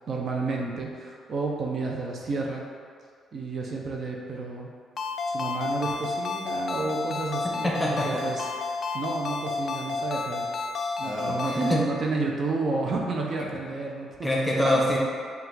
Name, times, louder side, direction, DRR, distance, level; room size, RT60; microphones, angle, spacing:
voice 1, 0.1-2.6 3.3-4.7 5.3-8.5 8.9-10.5 11.0-14.1 14.6-14.9, right 3 dB, 50° right, -1 dB, 0.6 m, -31 dB
Ringtone, 5.0-11.8, left 4 dB, 45° left, 0.3 m, -31 dB
voice 2, 7.6-8.2 11.0-11.3 11.7-11.8 14.2-15.0, left 1 dB, 10° left, -3 dB, 0.9 m, -25 dB
5.6 x 2.4 x 3.8 m, 2.1 s
cardioid pair, 90°, 0 cm